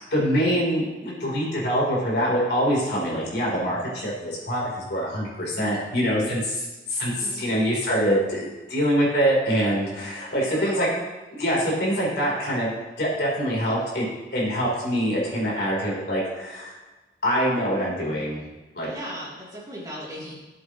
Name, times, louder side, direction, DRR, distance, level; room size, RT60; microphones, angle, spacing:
voice 1, 0.1-10.9 11.3-12.7 13.0-14.1 14.3-16.7 17.2-18.4 18.8-18.9, equal, 65° left, -4 dB, 3.8 m, -24 dB
voice 2, 7.1-7.5 10.4-11.0 13.6-13.7 18.8-20.4, equal, 20° right, -7 dB, 3.0 m, -38 dB
15.5 x 7.9 x 3.1 m, 1.2 s
head